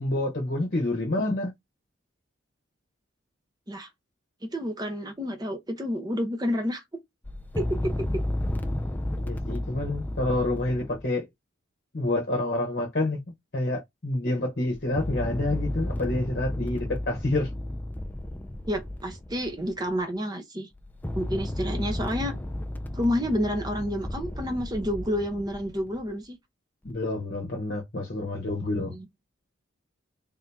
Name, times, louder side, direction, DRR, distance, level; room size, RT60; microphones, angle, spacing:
voice 1, 0.0-1.5 9.1-11.2 11.9-13.2 13.5-17.5 26.8-28.9, left 2 dB, 45° left, 1.0 m, -28 dB
voice 2, 4.4-6.8 7.6-8.2 18.7-20.7 21.1-22.3 22.9-26.4 28.8-29.1, equal, 20° right, 0.8 m, -29 dB
sound 1, 7.2-11.1 14.7-20.0 20.7-26.1 26.9-27.0, left 1 dB, 10° left, 0.4 m, -33 dB
3.6 x 2.8 x 3.4 m
head